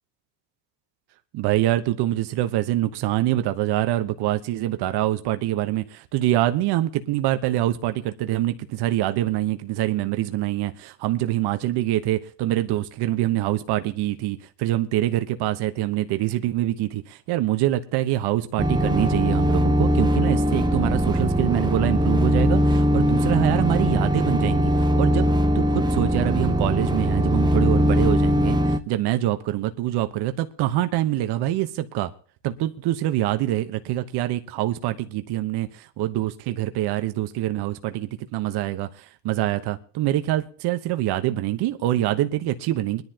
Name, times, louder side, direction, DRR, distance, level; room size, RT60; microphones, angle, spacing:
voice 1, 1.3-32.1 32.4-43.0, right 14 dB, 65° right, 9 dB, 1.1 m, -25 dB
sound 1, 18.6-28.8, equal, 10° right, 0.9 m, -21 dB
23.0 x 10.5 x 2.9 m, 0.42 s
supercardioid pair, 105°, 43 cm